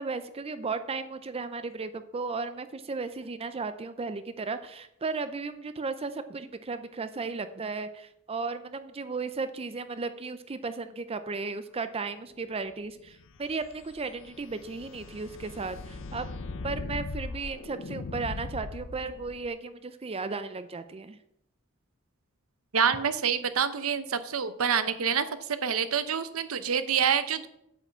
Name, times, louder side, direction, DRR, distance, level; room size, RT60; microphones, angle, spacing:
voice 1, 0.0-16.3 16.6-21.2, right 4 dB, 30° right, 12 dB, 0.5 m, -35 dB
sound 1, 13.1-19.5, left 3 dB, 60° left, 0.6 m, -39 dB
voice 2, 22.7-25.3 25.6-27.5, right 7 dB, 80° right, 12 dB, 0.8 m, -27 dB
8.6 x 5.7 x 7.2 m, 0.80 s
head